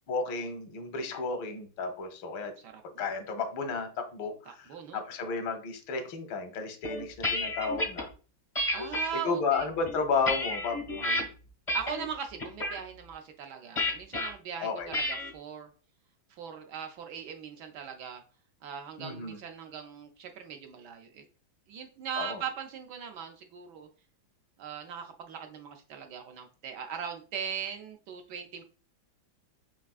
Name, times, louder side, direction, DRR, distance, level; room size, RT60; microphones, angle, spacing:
voice 1, 0.1-2.5 3.0-8.1 9.1-11.3 14.6-14.9 19.0-19.4 22.2-22.4, left 4 dB, 85° left, 7 dB, 1.6 m, -33 dB
voice 2, 2.6-3.0 4.7-5.0 8.7-9.7 11.7-15.7 16.3-18.2 18.6-21.2 21.7-23.9 24.6-28.6, right 7 dB, 70° right, 5 dB, 1.0 m, -40 dB
sound 1, 6.8-8.0 8.5-9.1 9.7-11.2 11.7-12.1 12.4-12.8 13.8-14.3 14.9-15.3, left 1 dB, 45° left, 0.4 m, -31 dB
5.8 x 3.2 x 2.3 m, 0.38 s
omnidirectional pair, 2.1 m